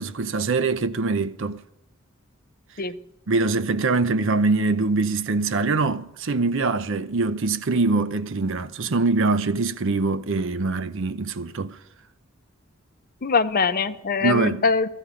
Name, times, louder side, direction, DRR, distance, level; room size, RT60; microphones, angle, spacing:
voice 1, 0.0-1.6 3.3-11.8 14.2-14.6, right 3 dB, 65° right, 0.7 m, -23 dB
voice 2, 13.2-14.9, left 5 dB, 45° left, 0.7 m, -22 dB
15.0 x 14.5 x 5.0 m
head